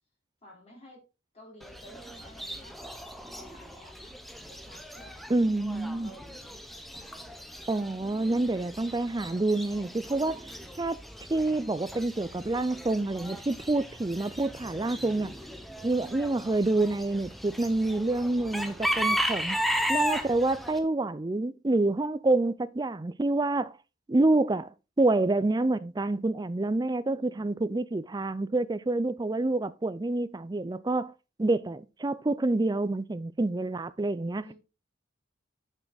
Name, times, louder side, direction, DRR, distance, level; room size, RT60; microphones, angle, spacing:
voice 1, 0.4-1.0 1.3-2.8 3.1-4.1 4.5-5.3 6.0-7.4 27.1-27.5 34.4-34.5, equal, 30° left, 3.5 m, -53 dB
Chicken rooster / Bird, 1.6-20.8, equal, ahead, 0.9 m, -36 dB
voice 2, 5.3-6.1 7.7-10.4 10.8-11.0 11.3-15.3 15.8-19.6 19.9-23.7 24.1-24.7 25.0-31.1 31.4-34.5, right 2 dB, 20° right, 0.4 m, -27 dB
8.6 x 6.3 x 4.0 m
head